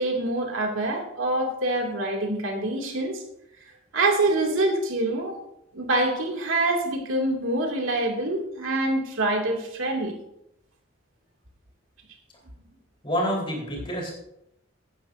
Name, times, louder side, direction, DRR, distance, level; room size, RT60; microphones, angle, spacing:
voice 1, 0.0-3.2 3.9-5.4 5.7-10.1, right 2 dB, 80° right, 1 dB, 2.4 m, -25 dB
voice 2, 13.0-14.1, equal, 25° left, -1 dB, 3.9 m, -27 dB
16.5 x 10.5 x 2.6 m, 0.79 s
head